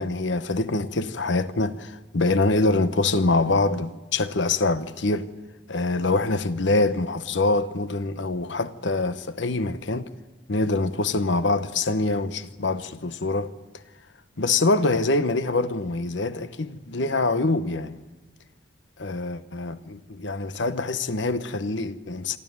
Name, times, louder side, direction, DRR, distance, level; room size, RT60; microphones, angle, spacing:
voice 1, 0.0-5.3 5.7-10.1 10.5-13.5 14.4-18.0 19.0-22.4, left 2 dB, 70° left, 1.0 m, -25 dB
27.0 x 13.0 x 9.3 m
head